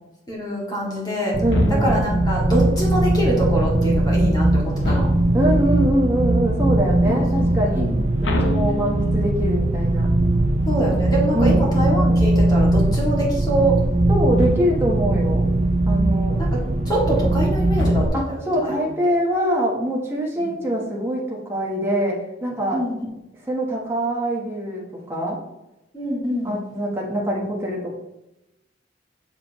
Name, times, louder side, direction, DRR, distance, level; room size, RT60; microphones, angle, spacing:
voice 1, 0.3-1.4 1.8-5.1 7.1-8.0 10.7-13.8 16.4-16.6 16.9-18.7 20.3-20.5 22.7-22.9 25.9-26.6, right 1 dB, 20° left, -4 dB, 2.3 m, -25 dB
sound 1, 1.3-18.1, right 1 dB, 35° right, 0.6 m, -20 dB
voice 2, 1.4-1.9 5.3-7.9 8.2-10.1 11.3-11.6 14.1-15.5 15.9-16.4 18.1-22.8 23.5-25.4 26.4-28.0, equal, 15° right, -4 dB, 1.2 m, -24 dB
sound 2, 1.5-2.3 4.8-5.6 8.2-9.4 14.3-15.0 17.7-18.6, left 1 dB, 85° left, 0.9 m, -26 dB
7.3 x 6.8 x 3.1 m, 0.93 s
head